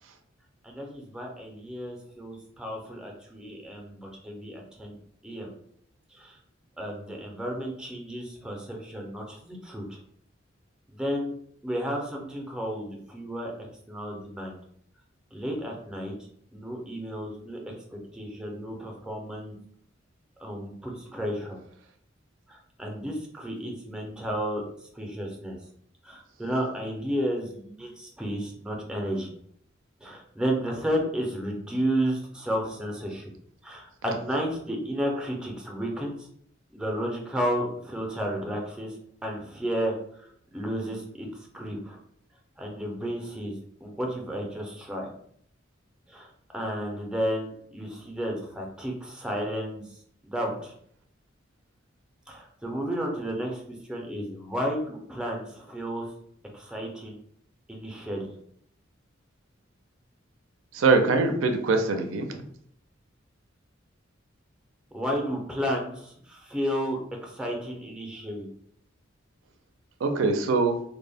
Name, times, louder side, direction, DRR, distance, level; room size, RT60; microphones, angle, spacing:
voice 1, 0.6-5.0 5.2-5.5 6.1-6.4 6.8-10.0 10.9-11.3 11.6-13.5 13.9-14.6 15.3-16.2 16.5-19.5 20.4-21.6 22.5-24.6 24.9-25.6 26.0-29.3 30.0-33.3 33.6-36.3 36.7-39.0 39.2-42.0 42.6-45.1 46.1-46.3 46.5-49.8 50.2-50.7 52.3-56.1 56.5-57.2 57.7-58.3 64.9-68.5, equal, 5° right, 0 dB, 0.4 m, -32 dB
voice 2, 60.7-62.3 70.0-70.8, right 3 dB, 80° right, 6 dB, 0.4 m, -23 dB
2.1 x 2.0 x 3.3 m, 0.65 s
head